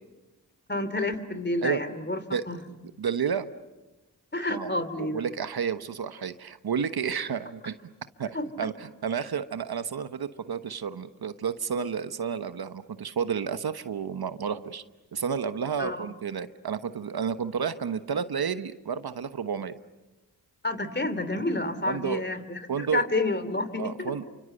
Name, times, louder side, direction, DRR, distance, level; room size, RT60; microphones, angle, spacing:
voice 1, 0.7-2.2 2.5-2.6 4.3-5.2 8.3-8.5 15.8-16.1 20.6-24.1, left 2 dB, 25° left, 12 dB, 3.0 m, -29 dB
voice 2, 3.0-3.5 4.5-4.7 5.0-7.8 8.2-14.8 15.1-19.8 21.9-22.2 22.7-23.1 23.8-24.2, right 7 dB, 65° right, 11 dB, 1.2 m, -31 dB
28.0 x 25.5 x 7.9 m, 1.1 s
cardioid pair, 45°, 40 cm